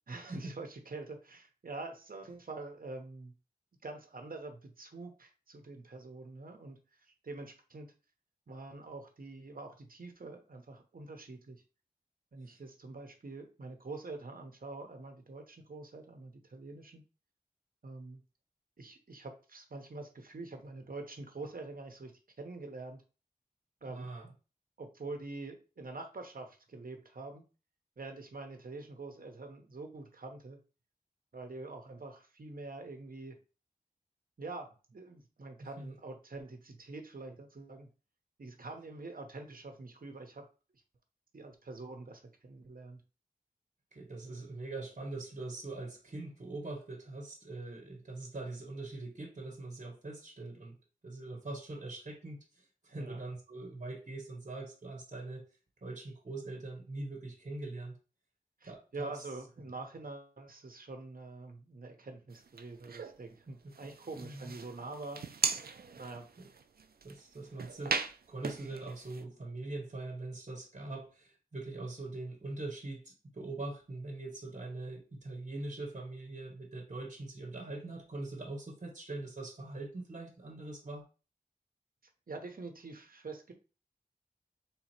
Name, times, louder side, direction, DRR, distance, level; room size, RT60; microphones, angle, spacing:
voice 1, 0.1-3.3 3.8-7.9 8.5-11.6 12.3-17.0 17.8-18.2 18.8-23.0 23.8-24.1 24.8-27.4 28.0-30.6 31.3-33.4 34.4-37.9 38.4-40.5 41.3-43.0 52.9-53.2 58.6-65.6 66.0-66.3 82.3-83.5, right 3 dB, 70° right, 0.9 m, -45 dB
voice 2, 23.9-24.3 35.6-36.0 43.9-50.7 51.0-55.5 55.8-58.0 58.6-59.2 64.2-64.5 66.4-66.5 67.0-81.1, right 2 dB, 50° right, 1.2 m, -42 dB
sound 1, 62.3-63.2 63.7-69.2, right 5 dB, 85° right, 0.4 m, -38 dB
3.7 x 2.9 x 4.4 m
wide cardioid pair, 70°, 15 cm